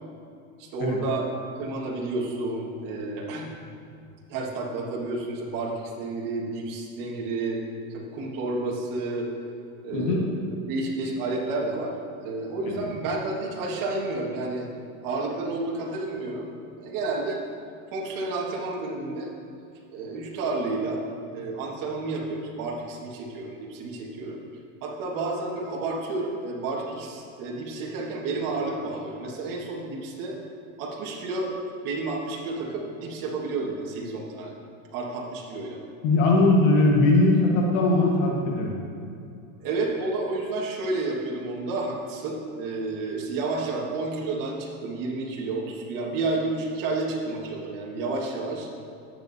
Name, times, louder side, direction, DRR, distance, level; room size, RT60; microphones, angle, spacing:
voice 1, 0.6-1.3 1.6-3.5 4.3-7.6 7.9-9.3 9.8-10.4 10.7-11.9 12.2-14.7 15.0-16.5 16.8-17.4 17.9-19.3 19.9-21.0 21.3-24.4 24.8-30.4 30.8-31.5 31.8-34.5 34.9-35.8 39.6-48.7, right 3 dB, 50° right, -3 dB, 1.8 m, -30 dB
voice 2, 9.9-10.2 12.6-12.8 36.0-38.7, left 2 dB, 60° left, -1 dB, 1.5 m, -20 dB
13.0 x 7.9 x 2.8 m, 2.5 s
supercardioid pair, 120°, 42 cm